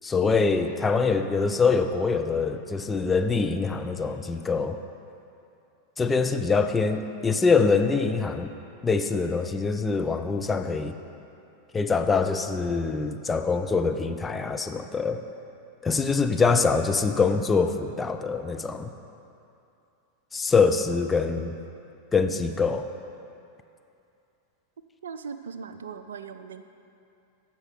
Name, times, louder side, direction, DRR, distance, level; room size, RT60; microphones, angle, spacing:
voice 1, 0.0-4.8 6.0-8.5 8.8-10.9 11.7-15.2 15.8-18.9 20.3-21.5 22.1-22.9, left 4 dB, 15° left, 6 dB, 0.5 m, -24 dB
voice 2, 25.0-26.6, right 6 dB, 65° right, 10 dB, 0.4 m, -39 dB
16.0 x 5.9 x 4.0 m, 2.7 s
figure-of-eight pair, 90°, 0 cm